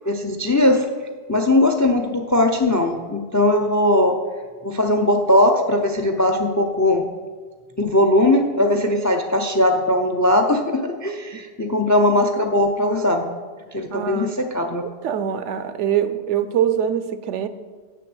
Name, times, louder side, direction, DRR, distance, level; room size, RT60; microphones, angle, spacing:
voice 1, 0.0-0.8 1.3-4.2 4.6-7.0 7.8-13.3 13.7-14.8, left 1 dB, 25° left, 0.3 m, -19 dB
voice 2, 13.9-14.4 15.0-17.5, right 9 dB, 75° right, 0.9 m, -23 dB
6.8 x 6.7 x 7.8 m
omnidirectional pair, 1.2 m